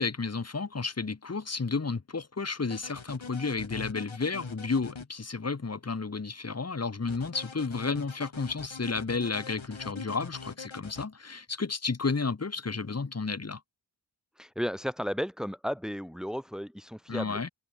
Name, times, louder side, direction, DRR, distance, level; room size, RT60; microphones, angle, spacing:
voice 1, 0.0-13.6 17.1-17.5, left 4 dB, 35° left, 1.2 m, -32 dB
sound 1, 2.6-5.1 7.1-11.1, left 5 dB, 80° left, 5.2 m, -43 dB
voice 2, 14.4-17.4, equal, ahead, 4.4 m, -34 dB
wide cardioid pair, 60°, 46 cm